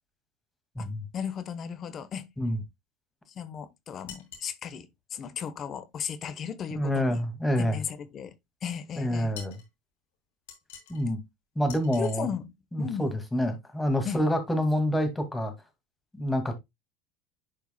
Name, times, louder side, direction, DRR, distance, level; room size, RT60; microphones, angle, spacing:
voice 1, 0.8-2.3 3.3-7.2 7.6-8.3 8.6-9.4 12.0-12.5 12.8-13.1 14.0-14.2, left 7 dB, 40° left, 1.2 m, -36 dB
sound 1, 4.1-4.5 9.3-9.7 10.5-11.1 11.7-12.2, left 7 dB, 85° left, 3.2 m, -46 dB
voice 2, 6.7-7.8 9.0-9.6 10.9-11.2 11.6-12.3 12.7-15.5 16.1-16.6, equal, 10° left, 2.2 m, -27 dB
11.0 x 4.6 x 2.3 m
supercardioid pair, 110°, 0 cm